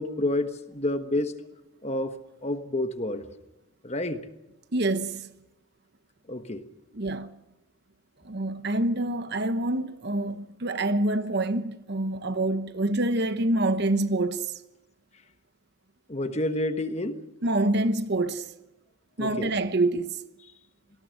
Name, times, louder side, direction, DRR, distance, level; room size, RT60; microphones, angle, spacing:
voice 1, 0.0-1.3 1.8-2.1 2.4-3.3 3.8-4.2 6.3-6.7 16.1-17.2 19.2-19.5, left 1 dB, 30° left, 1.3 m, -29 dB
voice 2, 4.7-5.3 6.9-7.3 8.2-14.5 17.4-18.5 19.2-20.2, right 2 dB, 50° right, 1.0 m, -26 dB
26.5 x 19.5 x 6.5 m
head